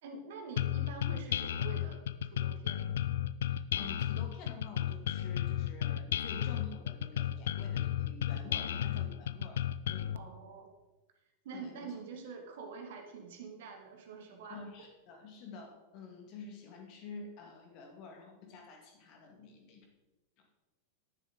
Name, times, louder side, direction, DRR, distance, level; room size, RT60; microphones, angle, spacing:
voice 1, 0.0-3.0 10.1-10.7 11.4-14.9, right 4 dB, 55° right, 3 dB, 1.9 m, -46 dB
sound 1, 0.6-10.2, left 10 dB, 60° left, 0.4 m, -33 dB
voice 2, 3.5-9.6 9.9-10.2 11.5-11.9 14.5-19.9, left 4 dB, 40° left, 2 dB, 2.2 m, -49 dB
10.5 x 10.5 x 3.8 m, 1.1 s
figure-of-eight pair, 90°, 0 cm